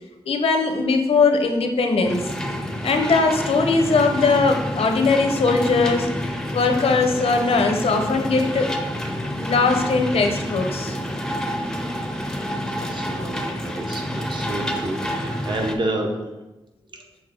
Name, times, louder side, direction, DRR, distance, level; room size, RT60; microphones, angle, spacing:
voice 1, 0.3-2.2 2.8-6.1 6.5-8.7 9.4-11.0, left 4 dB, 85° left, 5 dB, 0.7 m, -20 dB
sound 1, 2.0-15.8, equal, 5° left, 0.5 m, -28 dB
voice 2, 12.7-16.1, right 1 dB, 50° right, 2 dB, 1.0 m, -30 dB
6.4 x 4.0 x 3.7 m, 1.0 s
wide cardioid pair, 110°, 10 cm